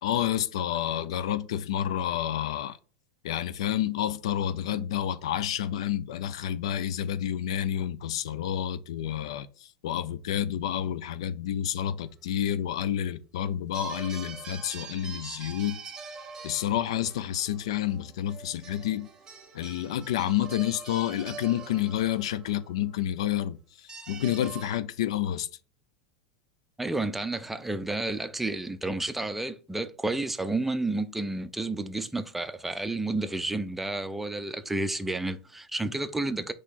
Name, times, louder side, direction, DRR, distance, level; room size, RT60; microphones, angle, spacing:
voice 1, 0.0-2.8 3.2-15.8 16.4-19.1 19.5-25.5, left 11 dB, 80° left, 0.4 m, -29 dB
sound 1, 13.7-23.0 23.9-24.8, right 5 dB, 20° right, 0.8 m, -44 dB
voice 2, 26.8-36.5, right 2 dB, 5° right, 0.4 m, -31 dB
4.4 x 3.0 x 4.0 m
supercardioid pair, 135°, 3 cm